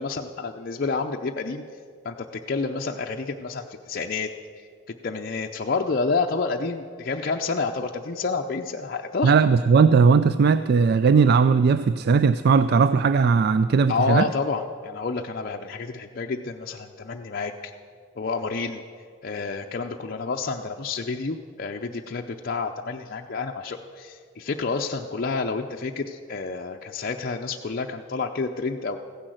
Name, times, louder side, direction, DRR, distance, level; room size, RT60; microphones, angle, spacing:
voice 1, 0.0-1.6 2.0-4.3 5.0-9.3 13.9-17.7 18.2-18.8 19.2-29.0, left 4 dB, 50° left, 2 dB, 0.6 m, -29 dB
voice 2, 9.2-14.3, right 5 dB, 55° right, 13 dB, 0.4 m, -18 dB
15.0 x 10.5 x 7.7 m, 2.2 s
head